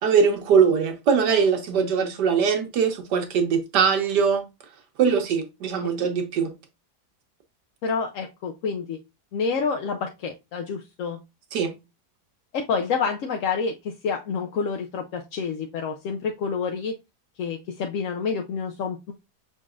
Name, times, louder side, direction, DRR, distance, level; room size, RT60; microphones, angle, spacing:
voice 1, 0.0-4.4 5.0-6.5 11.5-11.7, right 6 dB, 90° right, 1.5 m, -21 dB
voice 2, 7.8-9.0 9.3-11.2 12.5-16.9 17.4-19.1, left 5 dB, 65° left, 0.8 m, -28 dB
5.5 x 3.9 x 2.4 m
omnidirectional pair, 1.8 m